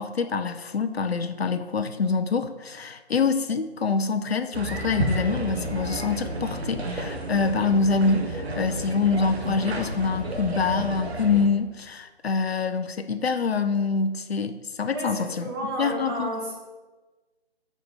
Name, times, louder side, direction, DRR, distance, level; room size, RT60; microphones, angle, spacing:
voice 1, 0.0-16.3, left 4 dB, 70° left, 9 dB, 0.5 m, -25 dB
sound 1, 4.5-11.5, right 1 dB, 75° right, 1.0 m, -31 dB
voice 2, 14.9-16.5, right 1 dB, 25° right, -5 dB, 1.4 m, -32 dB
5.1 x 3.6 x 5.7 m, 1.2 s
figure-of-eight pair, 150°, 32 cm